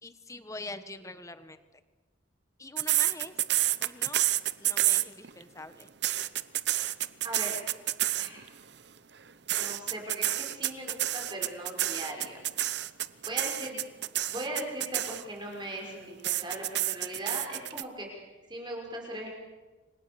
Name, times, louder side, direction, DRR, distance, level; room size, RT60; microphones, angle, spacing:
voice 1, 0.0-1.6 2.6-3.3 3.8-4.3 4.6-5.9, left 2 dB, 15° left, 11 dB, 1.3 m, -43 dB
sound 1, 2.8-5.4 5.8-8.5 9.5-15.5 16.2-17.8, right 14 dB, 55° right, 0.9 m, -28 dB
voice 2, 7.2-7.6 8.2-8.4 9.6-12.4 13.3-13.8 14.2-19.3, right 1 dB, 20° right, -1 dB, 5.8 m, -39 dB
30.0 x 25.0 x 7.1 m, 1.2 s
head